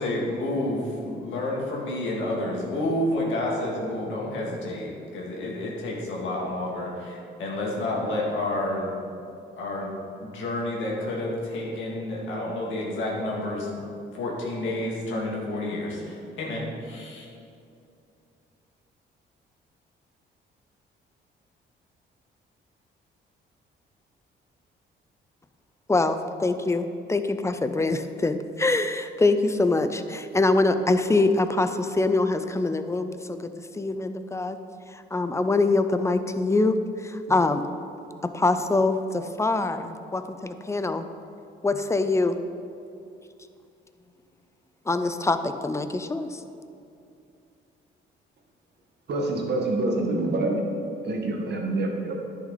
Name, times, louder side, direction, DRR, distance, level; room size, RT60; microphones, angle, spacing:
voice 1, 0.0-8.9 9.6-13.8 14.1-17.3, left 1 dB, 75° left, -3 dB, 2.1 m, -30 dB
voice 2, 25.9-33.5 33.8-34.6 35.1-36.8 37.0-37.6 38.3-41.1 41.6-42.4 44.9-46.4, left 2 dB, 15° left, 9 dB, 0.5 m, -24 dB
voice 3, 49.1-50.6 51.0-52.1, right 2 dB, 60° right, 1 dB, 1.6 m, -26 dB
10.5 x 6.5 x 4.1 m, 2.6 s
cardioid pair, 90°, 20 cm